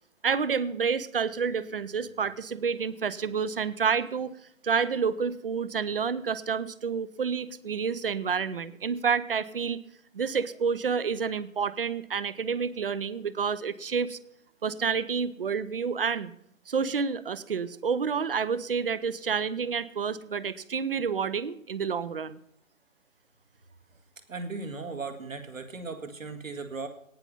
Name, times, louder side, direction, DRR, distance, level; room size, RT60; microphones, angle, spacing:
voice 1, 0.2-4.4 4.6-9.8 10.1-14.2 14.6-16.3 16.7-22.4, right 6 dB, 45° right, 18 dB, 0.7 m, -29 dB
voice 2, 24.3-26.9, right 4 dB, 75° right, 6 dB, 2.0 m, -37 dB
18.0 x 6.0 x 5.3 m, 0.74 s
figure-of-eight pair, 145°, 40 cm